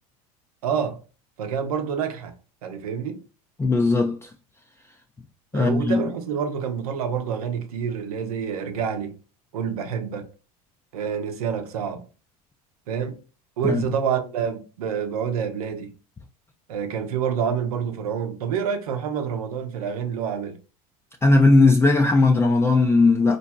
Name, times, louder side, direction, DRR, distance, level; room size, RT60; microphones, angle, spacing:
voice 1, 0.6-1.0 1.4-2.3 2.6-3.2 5.5-9.2 9.5-10.3 10.9-12.0 12.9-13.2 13.6-15.9 16.7-20.6, right 7 dB, 80° right, 0.8 m, -27 dB
voice 2, 3.6-4.3 5.5-6.0 13.6-13.8 21.2-23.4, left 3 dB, 15° left, 0.5 m, -18 dB
4.3 x 2.7 x 2.2 m
hypercardioid pair, 85°, 19 cm